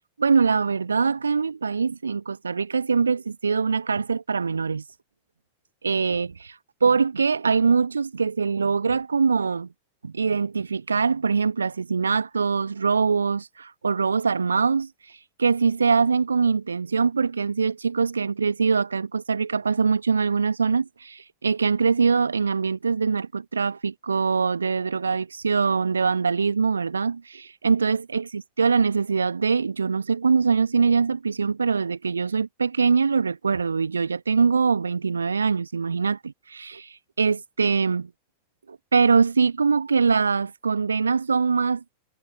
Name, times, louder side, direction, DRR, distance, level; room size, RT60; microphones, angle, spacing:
voice 1, 0.2-4.8 5.8-6.6 6.8-9.7 10.0-14.9 15.4-38.1 38.7-41.8, right 5 dB, 75° right, 1.9 m, -23 dB
figure-of-eight pair, 90°, 0 cm